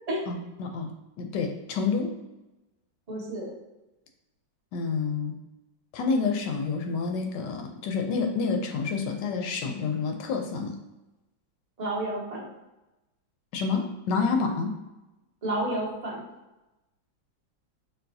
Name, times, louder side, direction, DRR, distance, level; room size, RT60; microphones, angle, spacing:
voice 1, 0.3-0.9 1.2-2.2 4.7-5.4 5.9-10.7 13.5-14.7, left 4 dB, 75° left, 3 dB, 1.2 m, -28 dB
voice 2, 3.1-3.5 11.8-12.5 15.4-16.3, right 1 dB, 45° right, -3 dB, 0.5 m, -30 dB
4.5 x 3.6 x 2.6 m, 1.0 s
omnidirectional pair, 2.1 m